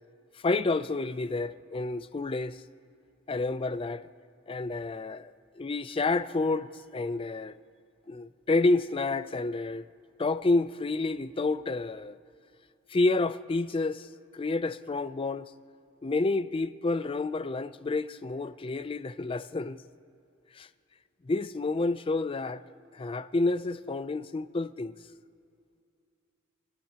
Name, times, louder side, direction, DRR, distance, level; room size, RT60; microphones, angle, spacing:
voice 1, 0.4-2.6 3.3-4.1 4.5-7.6 8.1-9.9 10.2-12.2 12.9-14.1 14.3-15.5 16.0-19.8 20.5-20.7 21.2-22.6 22.9-25.0, left 3 dB, 25° left, 0.4 m, -29 dB
28.5 x 12.0 x 2.9 m
head